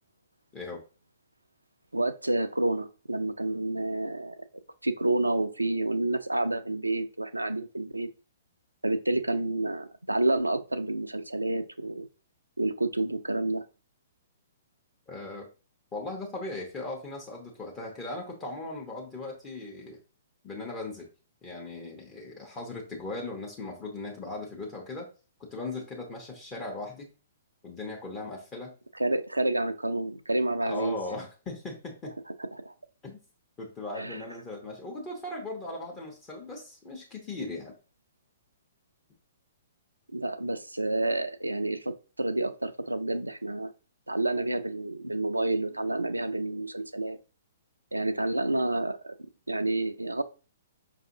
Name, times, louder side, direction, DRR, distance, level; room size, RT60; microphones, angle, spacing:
voice 1, 1.9-4.4 4.8-8.1 8.8-12.1 12.6-13.7 28.9-31.0 32.4-32.7 34.0-34.2 40.1-43.7 44.1-47.2 47.9-50.2, right 2 dB, 90° right, 0.3 m, -29 dB
voice 2, 15.1-15.5 15.9-20.0 20.4-21.1 21.4-25.1 25.4-27.1 27.6-28.7 30.6-32.1 33.0-33.2 33.6-37.7, left 2 dB, 20° left, 0.8 m, -38 dB
5.1 x 2.6 x 2.6 m
figure-of-eight pair, 120°, 0 cm